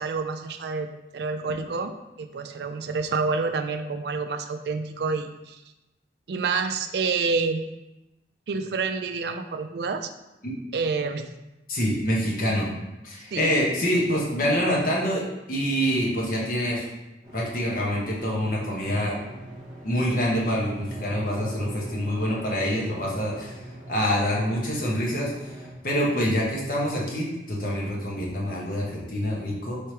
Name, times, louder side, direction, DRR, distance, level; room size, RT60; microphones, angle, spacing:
voice 1, 0.0-1.9 2.2-5.6 6.3-7.6 8.5-10.1 10.7-11.3 13.3-13.5, right 4 dB, 65° right, 8 dB, 0.4 m, -28 dB
voice 2, 11.7-12.7 13.0-15.2 15.5-16.9 17.3-19.2 19.8-23.5 23.9-25.3 25.8-29.8, equal, 50° left, -4 dB, 1.1 m, -26 dB
sound 1, 17.2-25.7, right 1 dB, 5° left, 1.0 m, -42 dB
3.4 x 3.2 x 4.4 m, 0.97 s
head